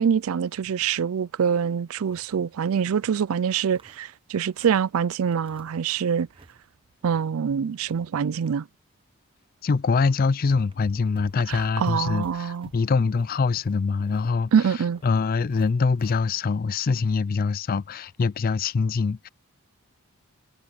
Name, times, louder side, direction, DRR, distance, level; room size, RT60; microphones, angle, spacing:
voice 1, 0.0-6.3 7.0-8.7 11.5-12.7 14.5-15.0, right 7 dB, 75° right, 0.4 m, -25 dB
sound 1, 0.5-1.0 1.4-1.5 1.8-3.1 3.5-4.9 5.3-5.9 6.2-6.6 6.9-8.5 8.9-9.1 9.8-9.9 10.2-16.2, right 2 dB, 25° right, 0.8 m, -51 dB
voice 2, 9.6-14.5 15.0-19.3, left 4 dB, 40° left, 0.4 m, -24 dB
head